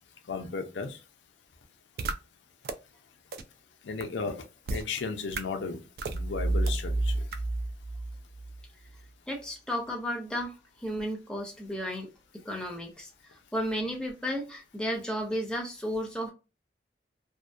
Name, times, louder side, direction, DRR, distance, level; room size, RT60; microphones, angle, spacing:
voice 1, 0.3-1.0 3.8-4.4 4.7-5.8 6.1-7.2, left 4 dB, 90° left, 0.5 m, -34 dB
sound 1, 2.0-2.1 2.6-2.7 3.3-3.4 4.0-4.1 4.7-4.8 5.3-5.4 6.0-6.2 6.7-6.8 7.3-7.4, right 3 dB, 55° right, 0.3 m, -33 dB
sound 2, 6.1-8.9, right 2 dB, 20° left, 1.2 m, -30 dB
voice 2, 9.3-10.5 10.8-12.1 12.4-13.1 13.5-16.3, equal, 5° left, 0.5 m, -33 dB
2.6 x 2.1 x 2.2 m
head